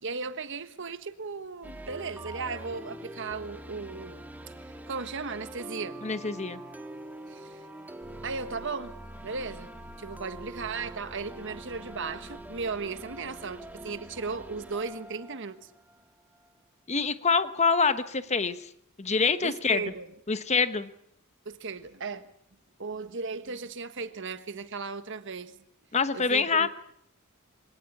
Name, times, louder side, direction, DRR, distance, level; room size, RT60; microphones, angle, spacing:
voice 1, 0.0-6.0 7.3-7.7 8.2-8.9 9.2-9.7 10.0-15.7 19.4-20.1 21.4-22.3 22.8-25.6 26.1-26.7, right 4 dB, 60° right, 1.4 m, -36 dB
sound 1, 1.6-16.5, right 1 dB, 10° right, 1.6 m, -44 dB
voice 2, 6.0-6.6 16.9-18.6 19.0-19.8 20.3-20.9 25.9-26.7, left 5 dB, 35° left, 1.1 m, -25 dB
sound 2, 8.0-14.9, equal, 40° right, 7.2 m, -51 dB
24.5 x 18.5 x 8.5 m
head